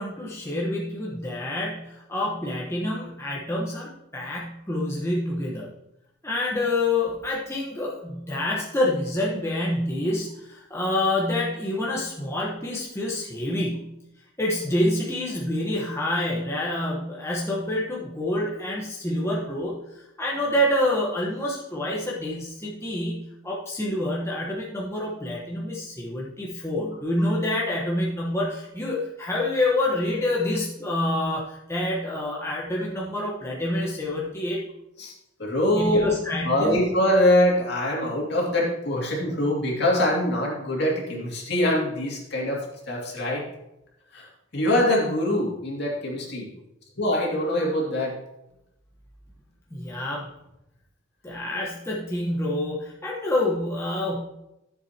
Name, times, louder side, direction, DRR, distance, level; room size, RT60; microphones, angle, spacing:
voice 1, 0.0-5.7 6.2-13.9 14.4-34.6 35.8-36.8 49.7-50.3 51.2-54.2, left 1 dB, 15° left, -4 dB, 1.2 m, -27 dB
voice 2, 35.4-36.2 36.4-42.6 42.9-43.5 44.1-44.3 44.5-46.5 47.0-48.2, left 1 dB, 55° left, -2 dB, 2.5 m, -23 dB
13.5 x 7.3 x 2.9 m, 0.88 s
head